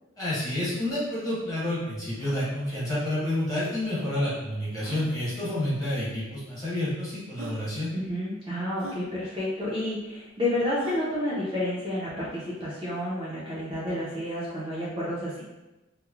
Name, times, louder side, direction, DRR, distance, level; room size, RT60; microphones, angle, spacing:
voice 1, 0.2-7.9, left 1 dB, 20° left, -9 dB, 1.0 m, -29 dB
sound 1, 0.9-1.0 1.5-1.6 2.1-2.5 3.8-3.9 4.8-5.1 6.1-6.2 6.9-7.0 7.3-7.6 8.8-9.0 10.8-11.1, right 2 dB, 90° right, 0.5 m, -42 dB
voice 2, 7.9-15.4, left 1 dB, 25° right, -8 dB, 0.5 m, -30 dB
3.0 x 2.1 x 2.3 m, 1.0 s
head